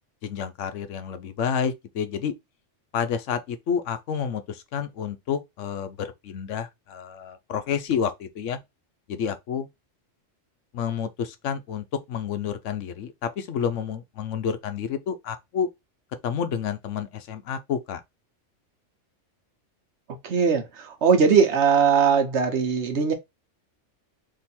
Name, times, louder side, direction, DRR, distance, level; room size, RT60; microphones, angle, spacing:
voice 1, 0.2-2.3 2.9-8.6 9.1-9.7 10.7-15.7 16.2-18.0, left 7 dB, 75° left, 1.0 m, -29 dB
voice 2, 20.2-23.1, right 6 dB, 65° right, 1.2 m, -20 dB
3.8 x 2.7 x 4.2 m
omnidirectional pair, 1.3 m